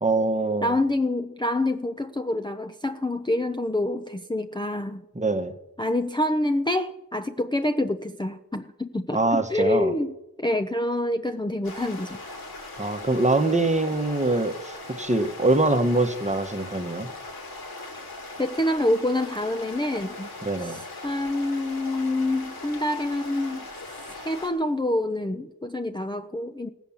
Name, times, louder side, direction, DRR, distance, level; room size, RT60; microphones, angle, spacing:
voice 1, 0.0-0.7 5.1-5.5 9.1-9.9 12.8-17.1 20.4-20.8, right 2 dB, 20° right, 8 dB, 1.2 m, -24 dB
voice 2, 0.6-5.0 5.8-10.1 10.4-12.2 18.4-20.3 20.6-23.7 24.1-26.7, left 1 dB, 15° left, 6 dB, 0.6 m, -27 dB
sound 1, 11.6-24.5, left 2 dB, 85° left, 2.8 m, -39 dB
17.0 x 8.3 x 7.2 m, 0.96 s
wide cardioid pair, 80°, 36 cm